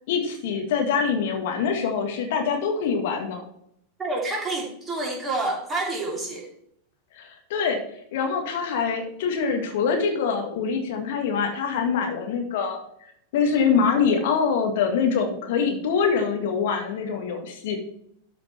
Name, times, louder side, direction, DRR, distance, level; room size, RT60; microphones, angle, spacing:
voice 1, 0.1-3.4 7.1-7.8 8.1-12.8 13.3-17.8, left 6 dB, 55° left, 4 dB, 1.6 m, -24 dB
voice 2, 4.0-6.5, right 2 dB, 15° right, -1 dB, 2.9 m, -28 dB
12.5 x 5.1 x 4.4 m, 0.71 s
figure-of-eight pair, 90°, 0 cm